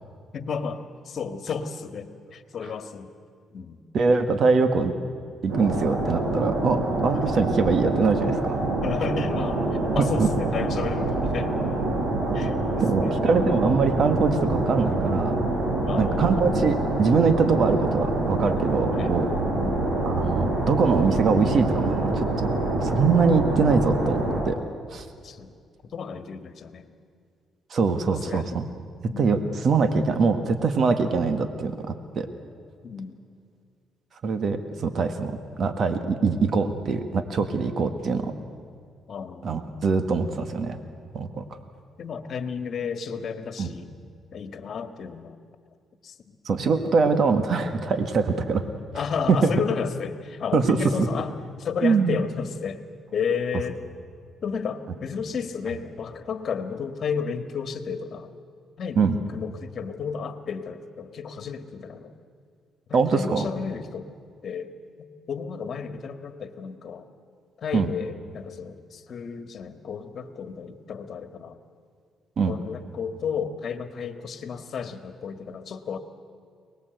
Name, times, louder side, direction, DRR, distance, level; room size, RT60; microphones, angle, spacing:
voice 1, 0.3-3.1 3.5-3.8 7.1-7.3 8.8-9.6 9.9-11.5 12.3-13.6 15.8-16.4 18.9-19.1 19.5-19.9 25.2-25.6 25.8-26.9 28.1-28.6 29.1-29.4 32.8-33.2 39.1-39.6 42.0-43.9 44.3-45.4 46.0-46.2 48.9-51.3 51.6-52.8 53.1-53.8 54.4-58.3 58.8-62.1 62.9-64.1 64.4-64.7 65.3-67.1 67.6-71.6 72.4-76.0, left 6 dB, 55° left, 9 dB, 1.7 m, -32 dB
voice 2, 3.9-4.9 5.4-8.6 10.0-10.3 12.3-12.4 12.8-15.4 16.0-19.3 20.0-22.5 22.8-24.6 24.9-25.1 27.7-28.7 29.2-32.3 34.2-35.3 35.6-38.3 39.4-40.8 41.1-41.4 43.6-43.7 46.5-48.6 49.3-49.5 50.5-51.1 51.8-52.2 59.0-59.2 62.9-63.5 67.7-67.9 72.4-72.5, right 4 dB, 55° right, 8 dB, 1.8 m, -23 dB
sound 1, 5.5-24.4, right 2 dB, 70° right, 5.7 m, -26 dB
23.5 x 20.0 x 8.0 m, 2.2 s
cardioid pair, 90°, 0 cm